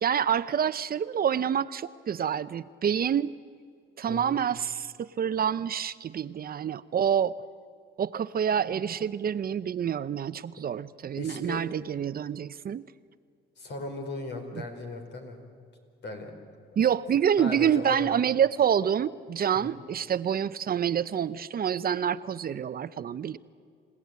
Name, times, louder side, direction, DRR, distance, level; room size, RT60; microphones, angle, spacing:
voice 1, 0.0-3.3 4.0-7.3 8.0-12.8 16.8-23.4, right 8 dB, 50° right, 14 dB, 0.7 m, -27 dB
voice 2, 4.1-4.4 11.2-11.6 13.6-15.4 16.0-16.3 16.7-16.8 17.4-18.2 19.5-19.9, left 2 dB, 60° left, 4 dB, 5.0 m, -37 dB
28.5 x 17.0 x 9.5 m, 2.2 s
cardioid pair, 90°, 20 cm